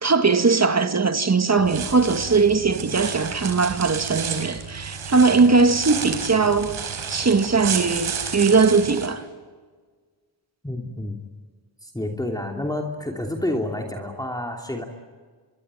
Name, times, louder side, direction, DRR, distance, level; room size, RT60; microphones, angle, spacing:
voice 1, 0.0-9.2, right 4 dB, 35° right, 2.0 m, -20 dB
sound 1, 1.6-9.1, right 6 dB, 85° right, 4.6 m, -31 dB
voice 2, 10.6-11.2 11.8-14.8, left 1 dB, 10° left, 2.9 m, -29 dB
26.5 x 23.0 x 9.0 m
cardioid pair, 90°, 47 cm